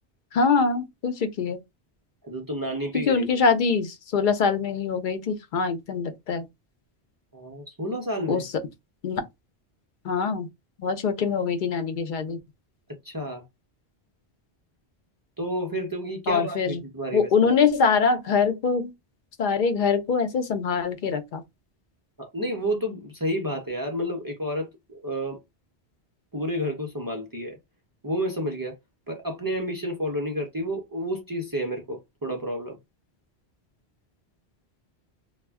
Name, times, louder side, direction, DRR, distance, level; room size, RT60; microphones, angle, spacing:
voice 1, 0.3-1.6 3.1-6.5 8.3-8.5 9.0-9.2 10.0-10.5 10.8-12.4 16.3-16.8 17.1-18.9 19.4-21.4, left 5 dB, 55° left, 0.6 m, -24 dB
voice 2, 2.2-3.3 7.3-8.4 12.9-13.4 15.4-17.7 22.2-25.4 26.3-27.6 28.0-28.8 29.1-32.8, equal, 35° right, 0.3 m, -30 dB
2.2 x 2.0 x 3.4 m
omnidirectional pair, 1.1 m